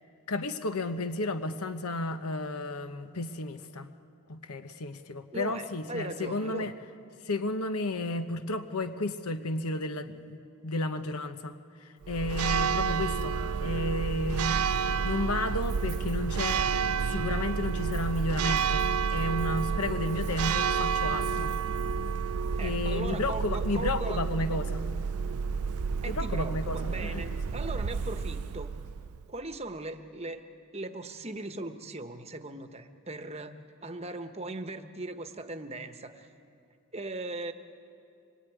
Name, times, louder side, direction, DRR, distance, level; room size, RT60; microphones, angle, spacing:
voice 1, 0.3-3.9 4.3-6.7 7.2-16.7 17.0-21.5 22.6-24.8 26.1-27.3, left 2 dB, 85° left, 9 dB, 1.0 m, -33 dB
voice 2, 5.3-6.7 22.6-24.6 26.0-28.7 29.3-30.5 30.7-36.3 36.9-37.5, right 2 dB, 30° right, 8 dB, 1.0 m, -39 dB
Church bell, 12.0-29.3, right 6 dB, 85° right, 0.6 m, -30 dB
25.5 x 21.5 x 9.3 m, 2.6 s
head